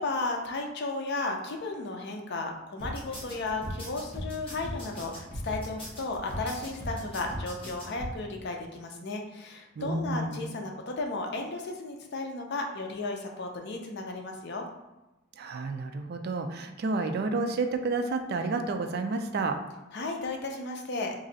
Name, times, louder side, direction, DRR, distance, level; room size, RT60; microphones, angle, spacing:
voice 1, 0.0-14.7 19.9-21.1, left 3 dB, 55° left, 2 dB, 0.5 m, -34 dB
sound 1, 2.8-8.1, equal, 25° left, 0.9 m, -38 dB
voice 2, 9.8-10.5 15.4-19.6, right 3 dB, 50° right, 6 dB, 0.3 m, -30 dB
3.1 x 2.6 x 3.8 m, 1.0 s
head